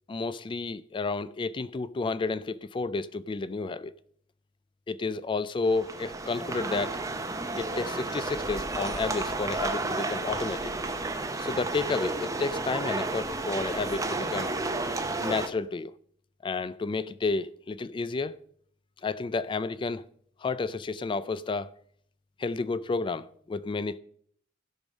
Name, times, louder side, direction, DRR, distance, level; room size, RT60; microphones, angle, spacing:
voice 1, 0.1-3.9 4.9-7.0 7.5-10.7 11.4-14.5 15.2-15.9 16.4-18.4 19.0-20.0 20.4-21.7 22.4-24.0, left 3 dB, 25° left, 0.3 m, -31 dB
sound 1, 5.7-15.5, right 2 dB, 20° right, 0.7 m, -32 dB
15.5 x 5.4 x 5.1 m
head